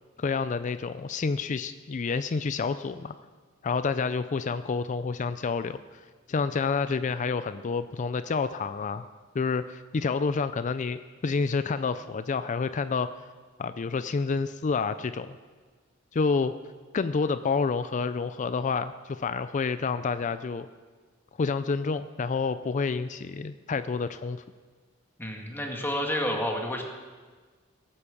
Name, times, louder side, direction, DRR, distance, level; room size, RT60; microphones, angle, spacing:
voice 1, 0.2-3.1 3.6-6.0 6.3-9.0 9.3-13.1 13.6-15.4 16.1-16.5 16.9-20.7 21.4-24.4, left 4 dB, 35° left, 12 dB, 0.4 m, -29 dB
voice 2, 25.2-26.8, left 1 dB, 10° left, 1 dB, 1.9 m, -30 dB
17.5 x 8.7 x 7.0 m, 1.4 s
head